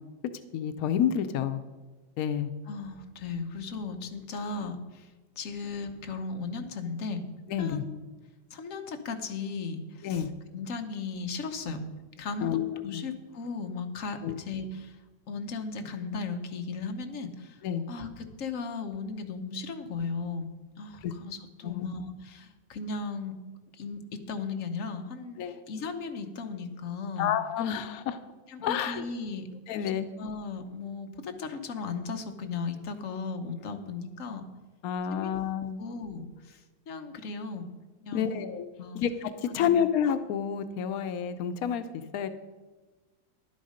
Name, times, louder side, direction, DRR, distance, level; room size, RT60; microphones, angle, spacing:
voice 1, 0.5-1.6 2.2-2.5 7.5-7.9 10.0-10.3 12.4-13.0 14.2-14.3 17.6-17.8 21.0-21.1 21.6-21.9 25.4-25.6 27.2-28.2 28.6-29.0 29.7-30.1 34.8-35.8 38.1-38.7 38.9-42.3, left 8 dB, 90° left, 10 dB, 0.7 m, -29 dB
voice 2, 2.7-5.1 5.4-7.2 7.6-8.0 8.5-10.2 10.5-11.8 12.2-15.0 15.3-17.6 17.9-20.5 20.8-23.3 23.7-25.4 25.7-27.3 28.5-34.5 35.1-35.3 35.8-36.6 36.9-37.7 38.0-38.4 38.8-39.0 39.5-39.8, left 4 dB, 50° left, 6 dB, 1.1 m, -36 dB
11.0 x 9.4 x 5.0 m, 1.2 s
omnidirectional pair, 2.2 m